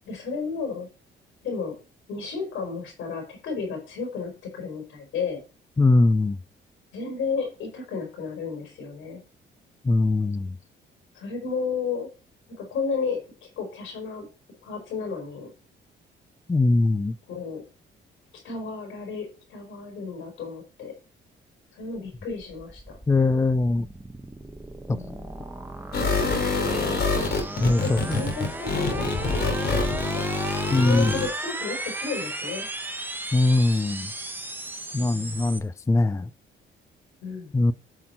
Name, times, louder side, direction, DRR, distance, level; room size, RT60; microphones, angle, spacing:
voice 1, 0.0-0.9 1.4-1.8 2.1-5.4 6.9-9.2 11.1-12.1 12.5-14.3 14.6-15.5 17.3-17.6 18.3-20.9 21.7-23.0 24.9-25.4 27.8-29.1 30.0-30.3 30.8-32.7 35.0-35.6 37.2-37.5, left 5 dB, 85° left, 4.7 m, -33 dB
voice 2, 5.8-6.4 9.8-10.6 16.5-17.2 23.1-23.9 27.6-28.2 30.7-31.1 33.3-34.1 34.9-36.3 37.5-37.7, left 2 dB, 15° left, 0.4 m, -21 dB
sound 1, 21.8-35.6, right 2 dB, 10° right, 1.2 m, -35 dB
sound 2, 25.9-31.3, left 3 dB, 55° left, 3.0 m, -26 dB
9.3 x 5.9 x 4.4 m
cardioid pair, 90°, 20 cm